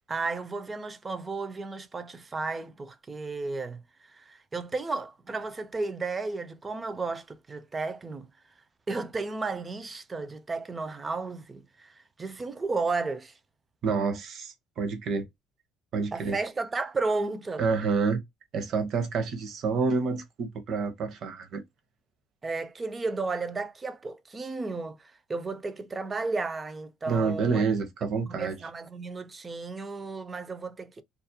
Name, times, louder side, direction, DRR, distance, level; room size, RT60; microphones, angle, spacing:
voice 1, 0.1-3.8 4.1-8.3 8.9-13.4 16.1-17.6 22.4-27.6 28.3-31.0, right 3 dB, 25° right, 0.4 m, -33 dB
voice 2, 13.8-15.3 15.9-16.3 17.6-18.2 18.5-21.6 27.1-28.6, right 4 dB, 50° right, 0.7 m, -28 dB
2.4 x 2.0 x 2.6 m
cardioid pair, 115°, 0 cm